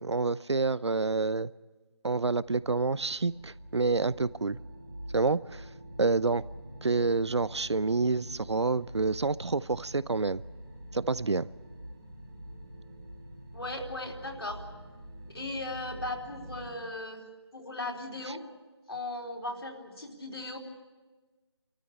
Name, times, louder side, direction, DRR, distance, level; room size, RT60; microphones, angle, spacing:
voice 1, 0.0-1.5 2.0-4.6 5.1-5.6 6.0-6.4 6.8-10.4 10.9-11.5, right 3 dB, 90° right, 20 dB, 0.7 m, -28 dB
sound 1, 2.2-16.8, equal, 10° right, 1.8 m, -46 dB
voice 2, 13.5-14.6 15.3-17.2 17.5-18.4 18.9-20.6, left 2 dB, 65° left, 0 dB, 3.9 m, -37 dB
27.0 x 14.0 x 8.6 m, 1.3 s
figure-of-eight pair, 175°, 14 cm